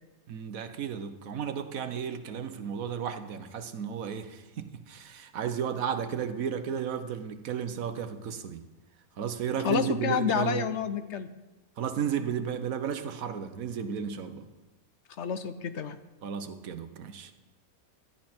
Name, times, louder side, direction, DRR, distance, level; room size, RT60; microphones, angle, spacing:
voice 1, 0.3-8.6 9.2-10.6 11.8-14.5 16.2-17.3, right 8 dB, 70° right, 1.4 m, -33 dB
voice 2, 9.6-11.3 15.2-16.0, left 7 dB, 60° left, 0.9 m, -29 dB
17.0 x 12.0 x 4.4 m
omnidirectional pair, 1.5 m